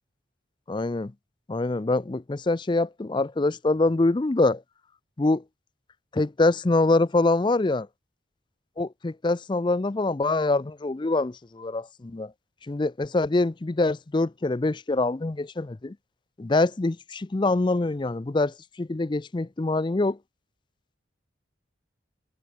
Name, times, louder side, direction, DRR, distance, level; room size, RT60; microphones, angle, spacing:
voice 1, 0.7-1.1 1.5-4.6 5.2-5.4 6.1-7.9 8.8-12.3 12.7-15.9 16.4-20.2, left 2 dB, 25° left, 0.4 m, -24 dB
head